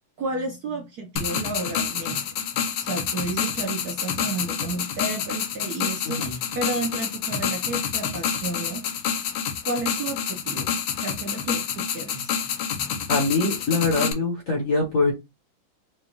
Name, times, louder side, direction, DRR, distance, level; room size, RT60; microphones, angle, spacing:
voice 1, 0.2-2.2 2.5-9.1 9.6-10.7 11.0-12.9, right 3 dB, 60° right, 1.0 m, -32 dB
sound 1, 1.2-14.1, left 8 dB, 75° left, 1.5 m, -28 dB
voice 2, 6.0-6.4 13.1-15.1, left 3 dB, 50° left, 1.1 m, -23 dB
5.0 x 2.4 x 2.9 m
omnidirectional pair, 2.4 m